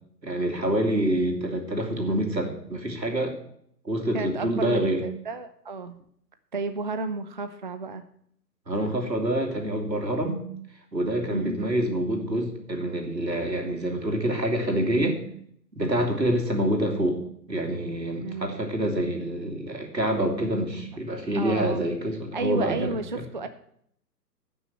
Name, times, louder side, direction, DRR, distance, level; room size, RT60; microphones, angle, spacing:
voice 1, 0.2-3.3 3.8-5.0 8.7-10.4 10.9-15.2 15.7-17.2 17.5-23.2, right 1 dB, 85° right, 3 dB, 2.8 m, -26 dB
voice 2, 4.1-6.0 6.5-8.0 11.3-11.6 18.2-18.7 20.7-21.0 21.4-21.8 22.3-23.5, right 3 dB, 30° right, 9 dB, 0.4 m, -32 dB
11.0 x 6.2 x 7.6 m, 0.68 s
figure-of-eight pair, 130°, 49 cm